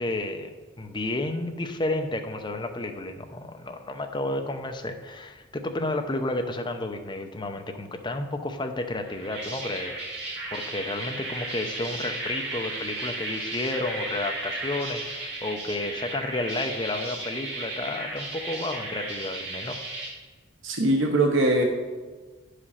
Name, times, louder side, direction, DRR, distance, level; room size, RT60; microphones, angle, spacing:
voice 1, 0.0-10.0 10.5-19.8, left 2 dB, 25° left, 5 dB, 0.7 m, -31 dB
sound 1, 9.0-20.1, right 2 dB, 55° right, 2.4 m, -35 dB
voice 2, 20.6-21.6, right 1 dB, 70° right, 2 dB, 0.9 m, -21 dB
9.5 x 5.1 x 5.7 m, 1.4 s
head